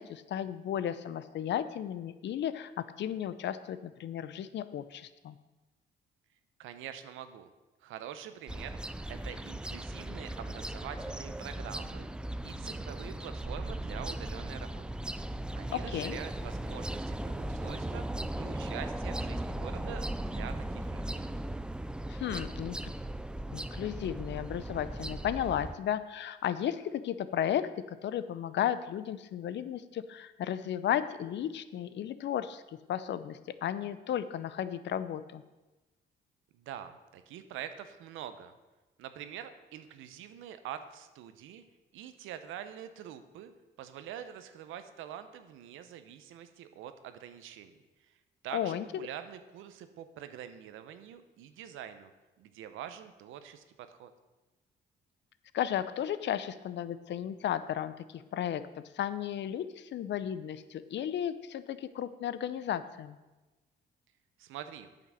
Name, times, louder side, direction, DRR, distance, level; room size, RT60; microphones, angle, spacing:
voice 1, 0.0-5.4 15.7-16.2 22.1-22.9 23.5-27.7 28.0-32.6 32.9-35.4 48.5-48.8 55.5-58.6 58.9-63.2, left 10 dB, 65° left, 14 dB, 0.6 m, -34 dB
voice 2, 6.6-7.5 7.8-8.8 9.1-12.1 12.4-15.0 15.6-21.2 36.5-38.5 39.0-41.6 41.9-43.5 43.8-47.7 48.0-52.1 52.4-54.1 64.4-64.9, right 10 dB, 90° right, 10 dB, 0.8 m, -45 dB
sound 1, 8.5-25.8, right 1 dB, 5° right, 0.3 m, -37 dB
8.9 x 5.9 x 6.2 m, 1.1 s
cardioid pair, 90°, 20 cm